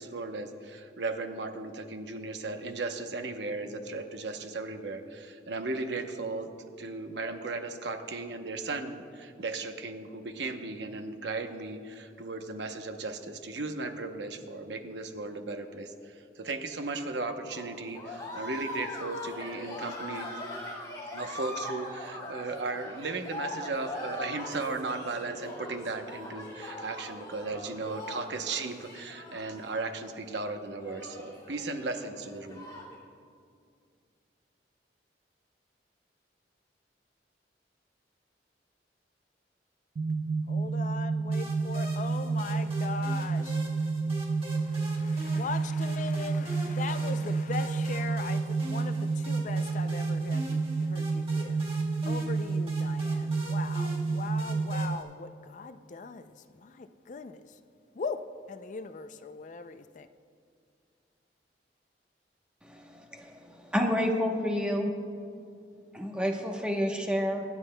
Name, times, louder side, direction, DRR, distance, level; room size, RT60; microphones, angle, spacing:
voice 1, 0.0-6.5 6.8-20.3 21.1-32.7, right 3 dB, 85° right, 6 dB, 0.8 m, -36 dB
sound 1, 17.5-33.0, left 1 dB, 20° left, 2.3 m, -41 dB
sound 2, 40.0-55.0, right 4 dB, 55° right, 0.3 m, -30 dB
voice 2, 40.5-43.6 44.6-51.6 52.1-57.6 57.9-60.1, left 4 dB, 45° left, 10 dB, 0.4 m, -40 dB
sound 3, 41.3-55.0, equal, 35° right, 1.5 m, -44 dB
voice 3, 63.7-64.9 65.9-67.4, equal, 5° right, 1 dB, 0.9 m, -28 dB
25.0 x 9.7 x 2.2 m, 2.2 s
head